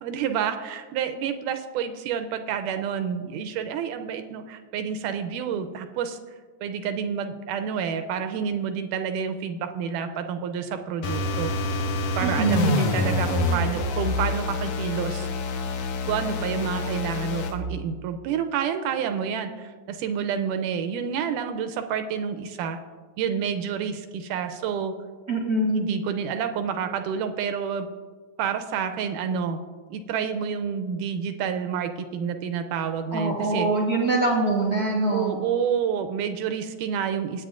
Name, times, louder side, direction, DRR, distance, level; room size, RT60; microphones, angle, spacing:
voice 1, 0.0-6.2 6.6-11.8 12.2-15.3 16.1-22.8 23.2-24.9 25.7-27.9 28.4-29.6 29.9-33.7 35.1-37.4, right 7 dB, 80° right, 7 dB, 2.0 m, -29 dB
sound 1, 11.0-17.6, left 3 dB, 70° left, 1.5 m, -27 dB
voice 2, 12.2-12.8 25.3-25.8 33.1-35.4, right 2 dB, 45° right, -2 dB, 1.1 m, -24 dB
22.0 x 8.8 x 2.5 m, 1.5 s
omnidirectional pair, 3.9 m